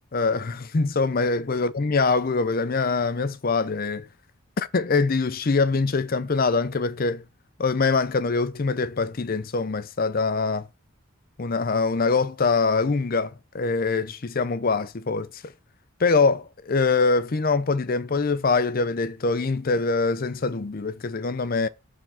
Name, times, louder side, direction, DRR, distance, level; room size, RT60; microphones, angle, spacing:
voice 1, 0.1-4.1 4.6-7.2 7.6-10.7 11.4-15.5 16.0-21.7, left 4 dB, 45° left, 0.5 m, -24 dB
6.9 x 3.7 x 5.8 m
head